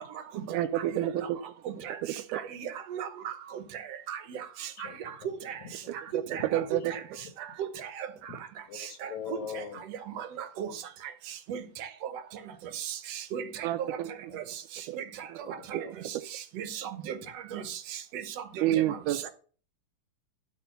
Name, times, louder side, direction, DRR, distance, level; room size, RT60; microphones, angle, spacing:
voice 1, 0.5-1.4 2.3-2.4 6.5-6.9 13.6-14.1 14.9-15.0 15.3-15.4 15.7-15.8 18.6-19.2, right 13 dB, 85° right, 2.0 m, -28 dB
voice 2, 2.3-3.3 4.1-4.4 5.5-5.6 6.3-6.6 6.9-7.0 8.0-8.1 9.0-9.4 10.2-10.7 11.5-11.9 12.7-13.0 13.3-13.4 13.8-13.9 14.3-14.4 15.0-15.1 15.7-15.8 16.6-17.2 17.5-17.8 18.1-18.2 18.7-19.0, right 9 dB, 65° right, 1.8 m, -36 dB
voice 3, 5.6-5.9 6.3-6.7 8.7-9.8 10.6-10.7 14.3-14.4 15.4-15.9, left 7 dB, 70° left, 2.8 m, -41 dB
12.5 x 4.2 x 6.8 m
omnidirectional pair, 3.5 m